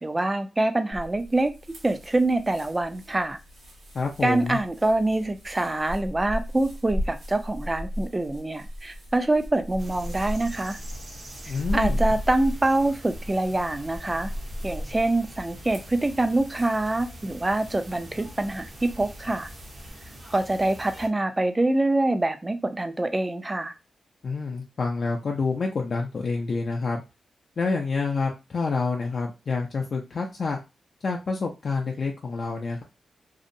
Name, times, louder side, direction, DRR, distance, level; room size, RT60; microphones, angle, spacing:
voice 1, 0.0-1.5 1.8-3.4 4.2-10.8 11.7-14.3 14.6-19.5 20.3-23.8, right 2 dB, 20° right, 8 dB, 0.4 m, -25 dB
sound 1, 0.9-19.9, equal, 80° right, 1.1 m, -36 dB
voice 2, 3.9-4.6 11.5-12.0 24.2-27.0 27.6-30.6 31.0-32.8, left 4 dB, 60° left, 1 dB, 0.5 m, -28 dB
sound 2, 9.8-21.1, equal, 55° right, 0.9 m, -44 dB
2.7 x 2.1 x 2.6 m, 0.26 s
cardioid pair, 85°, 0 cm